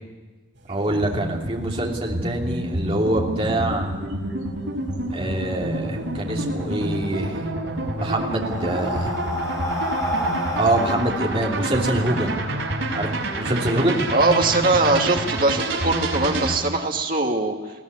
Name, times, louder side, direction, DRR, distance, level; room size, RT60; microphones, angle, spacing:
sound 1, 0.5-8.4 8.8-9.0, right 1 dB, 65° right, 4.7 m, -44 dB
voice 1, 0.7-3.9 5.1-7.5 8.0-9.2 10.6-12.4 12.9-14.0, right 1 dB, 30° right, -1 dB, 3.1 m, -25 dB
sound 2, 0.9-16.6, right 1 dB, 85° right, 5.6 m, -28 dB
Breathing, 7.7-12.4, equal, 15° left, 4.3 m, -29 dB
voice 2, 14.1-17.5, right 2 dB, 45° right, 2 dB, 2.5 m, -21 dB
21.5 x 17.0 x 9.7 m, 1.3 s
head